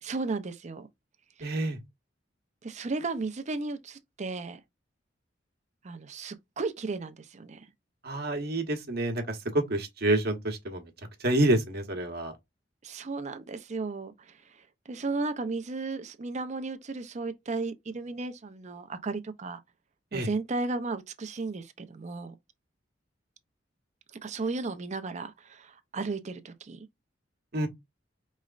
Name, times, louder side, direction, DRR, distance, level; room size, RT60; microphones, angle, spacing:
voice 1, 0.0-0.9 1.4-1.5 2.6-4.6 5.8-7.7 12.8-19.6 20.1-22.3 24.2-26.9, right 3 dB, 40° right, 0.5 m, -34 dB
voice 2, 1.4-1.8 8.0-10.8 11.2-12.3 20.1-20.3 27.5-27.7, right 1 dB, 60° right, 1.0 m, -28 dB
4.8 x 3.1 x 2.4 m
head